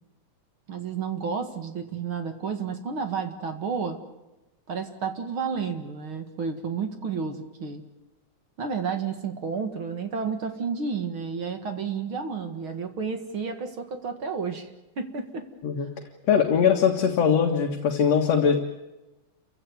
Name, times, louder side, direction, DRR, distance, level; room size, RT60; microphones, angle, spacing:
voice 1, 0.7-4.0 4.7-7.8 8.6-14.7 15.0-15.5 15.8-15.9, right 5 dB, 45° right, 6 dB, 2.4 m, -31 dB
voice 2, 16.3-18.6, left 7 dB, 60° left, 2 dB, 2.7 m, -21 dB
29.0 x 16.0 x 9.5 m, 1.0 s
omnidirectional pair, 3.5 m